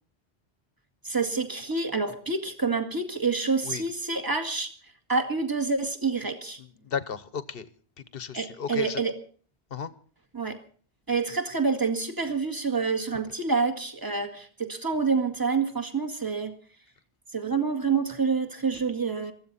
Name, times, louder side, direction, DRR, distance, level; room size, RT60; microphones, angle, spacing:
voice 1, 1.0-4.7 5.1-6.6 8.3-9.1 10.3-10.6 11.1-16.6 17.3-19.3, right 4 dB, 20° right, 6 dB, 2.0 m, -27 dB
voice 2, 6.6-7.7 8.1-9.0 9.7-9.9, left 7 dB, 60° left, 13 dB, 1.3 m, -34 dB
23.0 x 15.0 x 4.2 m, 0.43 s
omnidirectional pair, 1.1 m